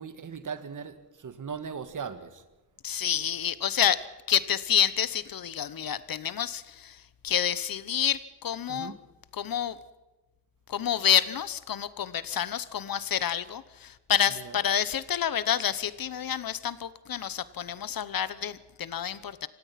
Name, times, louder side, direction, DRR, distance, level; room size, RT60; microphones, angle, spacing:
voice 1, 0.0-2.4 8.7-9.0 14.3-14.6, right 6 dB, 50° right, 11 dB, 1.7 m, -39 dB
voice 2, 2.8-4.0 4.3-8.9 9.3-9.8 10.7-19.5, left 9 dB, 60° left, 16 dB, 1.0 m, -28 dB
25.0 x 17.5 x 5.8 m, 1.1 s
wide cardioid pair, 140°, 39 cm